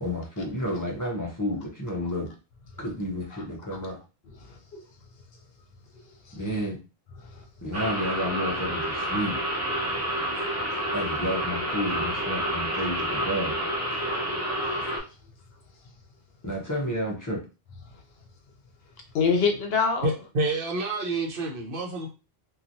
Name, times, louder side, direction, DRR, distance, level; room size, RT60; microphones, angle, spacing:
voice 1, 0.0-2.3 2.8-4.0 6.4-6.8 7.6-9.4 10.9-13.6 16.4-17.4, equal, 20° left, 0.6 m, -31 dB
voice 2, 4.4-4.8 6.1-6.4 7.3-7.4 9.9-10.0 12.8-12.9 14.0-14.1 19.1-20.1, left 5 dB, 70° left, 0.8 m, -27 dB
sound 1, 7.7-15.0, equal, 20° right, 0.6 m, -29 dB
voice 3, 20.0-22.1, right 2 dB, 60° right, 0.9 m, -28 dB
2.9 x 2.4 x 2.6 m
omnidirectional pair, 1.1 m